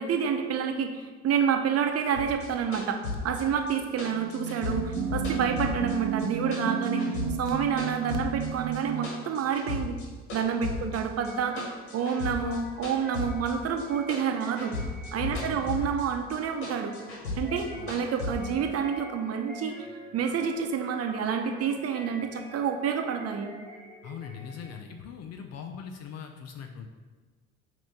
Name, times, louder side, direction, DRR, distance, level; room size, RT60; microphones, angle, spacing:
voice 1, 0.0-10.0 10.3-14.8 15.1-16.9 17.3-19.9 20.1-23.5, right 7 dB, 50° right, 5 dB, 0.8 m, -29 dB
sound 1, 2.1-6.3 6.5-8.5 8.7-10.0 10.3-13.8 14.1-16.0 16.3-18.3, left 3 dB, 85° left, 1.5 m, -35 dB
sound 2, 4.1-9.2, right 7 dB, 80° right, 0.6 m, -32 dB
sound 3, 11.2-24.9, equal, ahead, 1.4 m, -48 dB
voice 2, 15.3-15.7 17.7-18.0 24.0-26.9, left 7 dB, 55° left, 4 dB, 0.6 m, -41 dB
6.0 x 3.0 x 5.3 m, 1.4 s
hypercardioid pair, 70°, 32 cm